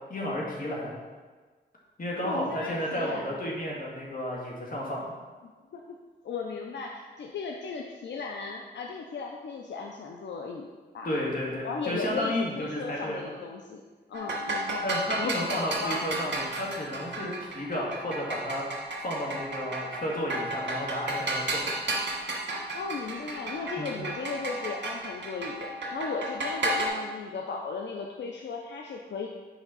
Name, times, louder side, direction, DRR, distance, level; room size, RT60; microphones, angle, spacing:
voice 1, 0.1-1.0 2.0-5.1 11.0-13.2 14.8-18.6 19.0-21.6 23.8-24.0, equal, 50° left, -3 dB, 2.1 m, -32 dB
voice 2, 2.2-3.4 5.7-6.0 6.2-10.7 10.9-11.2 11.6-13.8 14.1-14.9 15.2-16.0 22.7-29.3, left 4 dB, 80° left, 1 dB, 0.6 m, -36 dB
sound 1, 14.1-26.9, right 2 dB, 75° right, 1.9 m, -33 dB
8.5 x 5.4 x 4.1 m, 1.4 s
cardioid pair, 80°, 18 cm